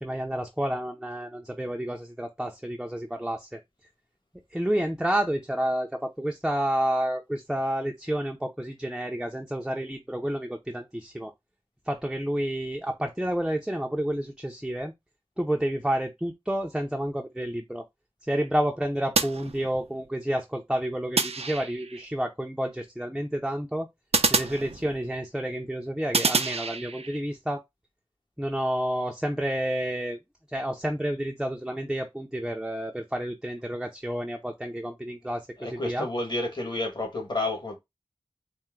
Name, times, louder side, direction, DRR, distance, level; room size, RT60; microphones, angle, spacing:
voice 1, 0.0-3.6 4.5-11.3 11.9-14.9 15.4-17.8 18.2-23.9 24.3-27.6 28.4-30.2 30.5-36.1, right 1 dB, 5° right, 0.6 m, -30 dB
sound 1, 19.1-20.1 21.2-22.0 24.1-25.2 26.1-27.2, right 4 dB, 90° right, 0.5 m, -27 dB
voice 2, 35.6-37.8, left 2 dB, 45° left, 1.7 m, -30 dB
4.4 x 2.2 x 3.7 m
wide cardioid pair, 60°, 10 cm